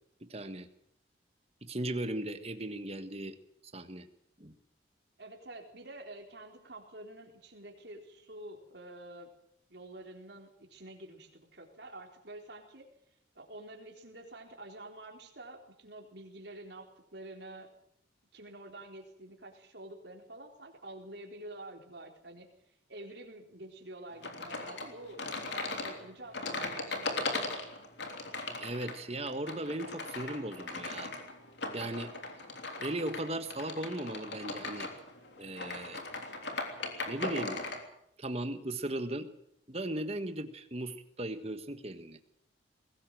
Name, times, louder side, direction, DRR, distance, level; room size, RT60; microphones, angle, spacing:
voice 1, 0.2-0.7 1.6-3.4 3.7-4.1 4.4-4.5 28.4-31.1 31.7-32.1 32.8-34.9 35.4-36.0 37.1-37.6 38.2-39.3 39.7-42.2, right 1 dB, 30° right, 9 dB, 1.5 m, -37 dB
voice 2, 5.2-9.3 9.7-12.9 13.4-17.7 18.3-22.5 22.9-25.3 25.5-27.1, right 1 dB, 60° right, 2 dB, 4.0 m, -48 dB
sound 1, 24.2-37.8, left 3 dB, 65° left, 3.4 m, -39 dB
21.0 x 18.0 x 7.7 m, 0.74 s
head